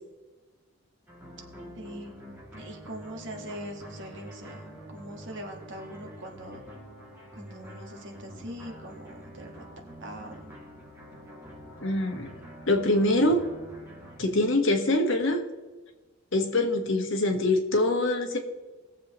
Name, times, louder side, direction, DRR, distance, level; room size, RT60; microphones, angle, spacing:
sound 1, 1.1-14.2, equal, 10° right, 2.7 m, -46 dB
voice 1, 1.7-6.6 7.3-9.6 10.0-10.5, right 1 dB, 60° right, 3 dB, 1.7 m, -42 dB
voice 2, 11.8-12.3 12.7-13.5 14.2-15.4 16.3-18.4, left 1 dB, 60° left, 4 dB, 1.5 m, -24 dB
20.5 x 7.4 x 3.1 m, 1.2 s
head